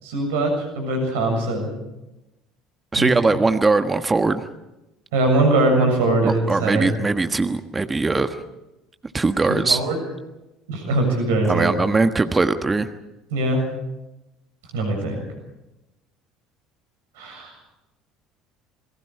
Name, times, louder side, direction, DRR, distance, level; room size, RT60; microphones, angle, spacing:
voice 1, 0.0-1.7 3.0-3.1 5.1-6.9 9.5-10.0 10.7-11.7 13.3-13.6 14.7-15.2 17.2-17.5, right 2 dB, 65° right, 3 dB, 7.0 m, -21 dB
voice 2, 2.9-4.4 6.2-8.4 9.1-9.8 11.4-12.9, right 3 dB, 20° right, 8 dB, 1.4 m, -20 dB
28.5 x 22.5 x 4.9 m, 0.95 s
figure-of-eight pair, 60°, 0 cm